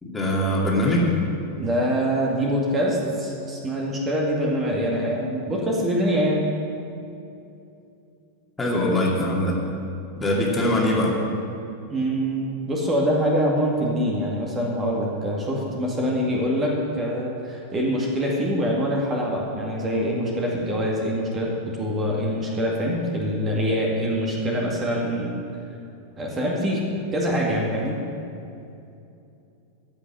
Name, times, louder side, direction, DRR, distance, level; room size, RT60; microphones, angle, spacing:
voice 1, 0.0-1.1 8.6-9.6 10.2-11.2, left 1 dB, 15° left, -3 dB, 2.4 m, -22 dB
voice 2, 1.6-6.4 11.9-25.3 26.2-26.8 27.1-28.0, equal, 20° right, -2 dB, 2.1 m, -24 dB
14.5 x 6.4 x 7.8 m, 2.7 s
figure-of-eight pair, 90°, 0 cm